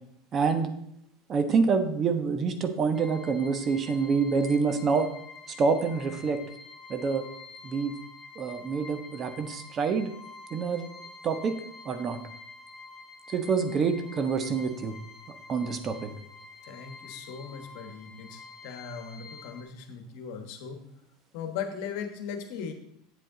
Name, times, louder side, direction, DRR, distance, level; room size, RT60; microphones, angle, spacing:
voice 1, 0.3-0.7 1.3-5.1 5.6-6.4 6.9-7.3 7.6-7.9 8.4-10.1 10.5-10.9 11.2-11.5 11.8-12.2 13.3-15.0 15.3-16.1, right 5 dB, 35° right, 8 dB, 1.0 m, -27 dB
sound 1, 2.9-19.6, left 4 dB, 20° left, 1.6 m, -48 dB
voice 2, 16.6-20.8 21.3-22.7, left 7 dB, 65° left, 6 dB, 1.2 m, -38 dB
8.3 x 7.8 x 3.8 m, 0.74 s
hypercardioid pair, 90°, 0 cm